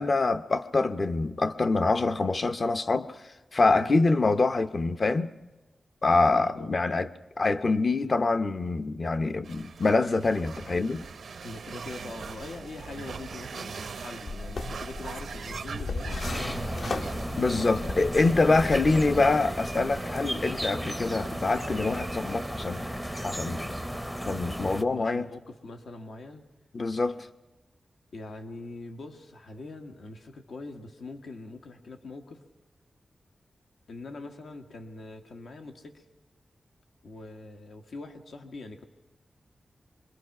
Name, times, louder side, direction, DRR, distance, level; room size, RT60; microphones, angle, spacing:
voice 1, 0.0-3.1 3.5-5.3 6.0-7.1 7.4-11.0 17.4-22.8 23.2-23.7 24.3-25.3 26.7-27.3, left 3 dB, 40° left, 0.7 m, -25 dB
voice 2, 6.0-7.1 8.0-8.2 11.4-17.9 21.0-21.2 24.8-26.4 28.1-32.4 33.9-36.1 37.0-38.8, left 2 dB, 80° left, 1.6 m, -43 dB
sound 1, 9.4-23.8, right 5 dB, 75° right, 0.7 m, -42 dB
sound 2, 14.3-19.3, left 3 dB, 55° left, 1.0 m, -37 dB
sound 3, 16.2-24.8, equal, 5° left, 0.6 m, -34 dB
25.0 x 22.0 x 5.9 m
wide cardioid pair, 150°, 0 cm